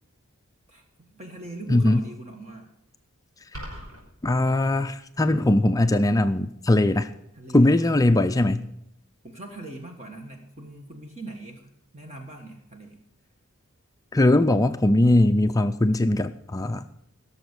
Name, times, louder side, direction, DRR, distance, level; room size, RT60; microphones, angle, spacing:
voice 1, 0.7-2.7 7.3-7.9 9.2-13.0, right 2 dB, 30° right, 2 dB, 1.4 m, -41 dB
voice 2, 1.7-2.0 3.5-3.6 4.2-7.1 7.5-8.7 14.1-16.9, left 1 dB, 15° left, 8 dB, 0.4 m, -20 dB
sound 1, 3.5-4.0, equal, 75° right, 4.8 m, -37 dB
17.0 x 7.0 x 8.0 m, 0.80 s
head